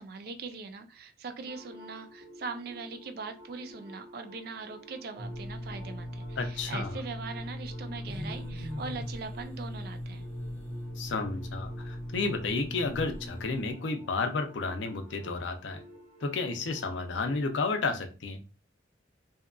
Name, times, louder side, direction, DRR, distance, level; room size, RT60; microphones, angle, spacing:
voice 1, 0.0-10.3, right 4 dB, 50° right, 8 dB, 0.4 m, -41 dB
sound 1, 1.5-17.5, right 1 dB, 30° right, 0.8 m, -52 dB
sound 2, 5.2-13.7, equal, 10° left, 0.5 m, -39 dB
voice 2, 6.4-7.0 11.0-15.8 16.2-18.4, left 3 dB, 75° left, 6 dB, 0.5 m, -32 dB
2.7 x 2.4 x 2.3 m, 0.33 s
head